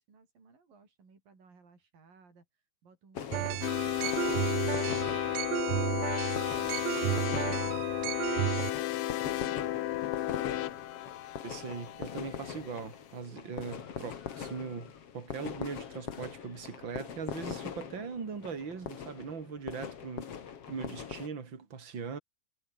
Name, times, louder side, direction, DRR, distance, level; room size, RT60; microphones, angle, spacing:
voice 1, 0.0-4.8 5.3-8.9 9.3-9.9 13.5-14.0, right 4 dB, 70° right, 8.3 m, -60 dB
sound 1, 3.2-21.3, left 8 dB, 45° left, 2.6 m, -42 dB
sound 2, 3.3-8.7, right 15 dB, 90° right, 1.5 m, -33 dB
sound 3, 3.6-12.6, left 15 dB, 75° left, 2.5 m, -33 dB
voice 2, 11.4-20.4 20.7-22.2, right 5 dB, 35° right, 3.7 m, -40 dB
omnidirectional pair, 4.2 m